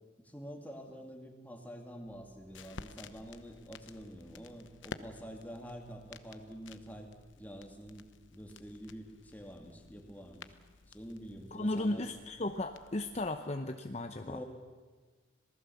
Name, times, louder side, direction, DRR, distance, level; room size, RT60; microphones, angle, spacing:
voice 1, 0.2-7.1 7.4-10.5 10.8-12.2 14.2-14.4, equal, 10° left, 3 dB, 2.5 m, -47 dB
sound 1, 2.0-13.3, left 4 dB, 90° left, 1.0 m, -53 dB
voice 2, 11.5-14.4, left 1 dB, 35° left, 6 dB, 0.8 m, -35 dB
26.5 x 19.0 x 7.2 m, 1.4 s
head